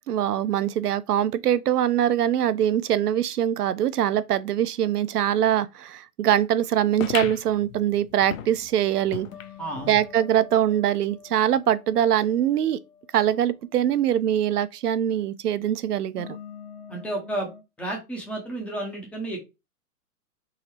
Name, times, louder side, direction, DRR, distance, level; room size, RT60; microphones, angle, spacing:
voice 1, 0.1-9.3 9.9-12.8 13.1-16.4, right 10 dB, 85° right, 0.6 m, -23 dB
sound 1, 7.0-10.0 10.4-10.5 10.7-10.8 11.6-11.7, left 9 dB, 60° left, 0.7 m, -36 dB
sound 2, 9.3-13.5 16.2-17.6, left 7 dB, 90° left, 1.2 m, -46 dB
voice 2, 9.6-10.0 16.9-17.5 17.8-19.5, right 1 dB, 5° left, 0.4 m, -31 dB
3.7 x 2.0 x 4.3 m
hypercardioid pair, 125°, 45 cm